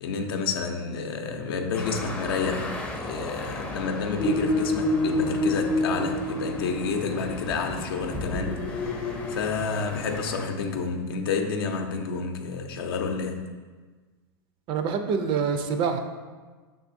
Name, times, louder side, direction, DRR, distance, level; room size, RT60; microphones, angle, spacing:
voice 1, 0.0-13.4, left 5 dB, 75° left, 4 dB, 0.6 m, -30 dB
sound 1, 1.7-10.5, left 1 dB, 10° left, 0.5 m, -37 dB
sound 2, 4.2-7.1 8.1-9.3, left 1 dB, 50° left, 0.7 m, -27 dB
voice 2, 14.7-16.0, right 6 dB, 45° right, 7 dB, 0.4 m, -26 dB
5.5 x 3.6 x 2.6 m, 1.4 s
hypercardioid pair, 115°, 12 cm